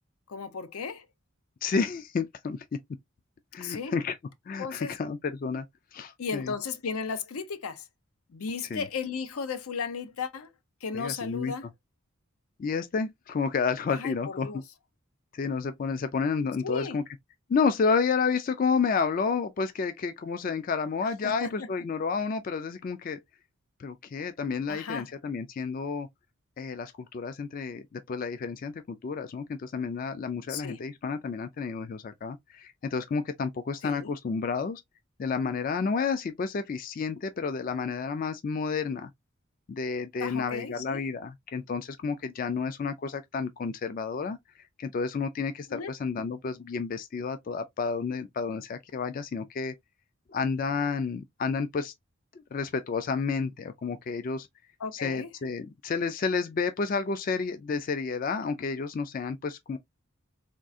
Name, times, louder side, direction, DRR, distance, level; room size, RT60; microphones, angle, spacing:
voice 1, 0.3-1.0 3.6-4.0 4.6-4.9 6.2-7.9 8.3-10.5 10.8-11.6 13.9-14.6 16.6-17.0 21.2-21.7 24.7-25.1 30.5-30.8 33.8-34.1 40.2-41.0 45.7-45.9 54.8-55.3, left 5 dB, 85° left, 0.6 m, -35 dB
voice 2, 1.6-2.7 3.5-4.2 4.5-5.7 5.9-6.5 8.7-8.9 10.9-11.5 12.6-14.6 15.3-17.0 17.5-23.2 23.8-26.1 26.6-34.8 35.2-39.1 39.7-44.4 44.8-49.7 50.3-51.9 52.3-54.5 54.9-59.8, left 5 dB, 40° left, 0.3 m, -30 dB
3.6 x 2.4 x 2.5 m
head